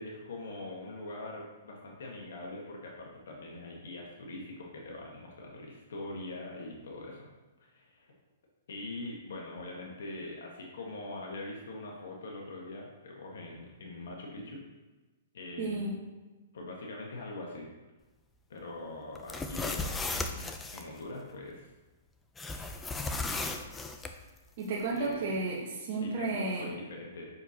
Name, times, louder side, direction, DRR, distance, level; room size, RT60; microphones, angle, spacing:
voice 1, 0.0-7.3 7.6-8.1 8.7-14.6 15.3-15.9 16.5-17.7 18.5-21.7 24.9-25.3 26.0-27.3, left 2 dB, 75° left, -1 dB, 1.3 m, -43 dB
voice 2, 15.6-16.0 24.6-26.7, right 3 dB, 45° right, -5 dB, 1.2 m, -33 dB
sound 1, 19.2-20.8 22.4-24.1, left 3 dB, 10° left, 0.5 m, -35 dB
6.9 x 6.3 x 2.8 m, 1.2 s
hypercardioid pair, 150°, 0 cm